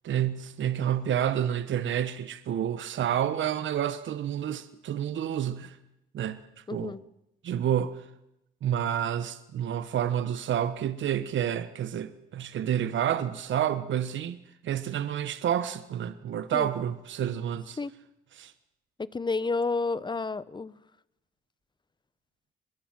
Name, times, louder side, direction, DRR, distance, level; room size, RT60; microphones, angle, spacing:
voice 1, 0.0-5.8 6.1-6.4 6.7-6.9 7.4-7.9 8.6-17.8 18.3-18.5, right 10 dB, 75° right, 1.2 m, -29 dB
voice 2, 6.7-7.0 16.5-16.7 17.8-17.9 19.1-20.8, left 3 dB, 25° left, 1.0 m, -30 dB
23.0 x 21.0 x 7.6 m
cardioid pair, 90°, 20 cm